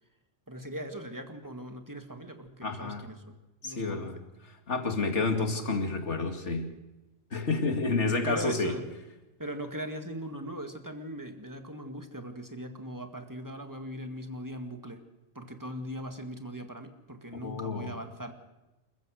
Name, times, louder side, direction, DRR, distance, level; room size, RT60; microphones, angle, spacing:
voice 1, 0.5-3.3 3.6-4.1 8.2-8.9 9.4-15.0 15.4-18.3, equal, 15° right, 6 dB, 1.9 m, -39 dB
voice 2, 2.6-3.0 3.6-4.2 4.4-6.7 7.3-8.7 17.4-17.9, left 3 dB, 65° left, 4 dB, 2.6 m, -30 dB
28.0 x 14.5 x 6.4 m, 1.1 s
omnidirectional pair, 1.3 m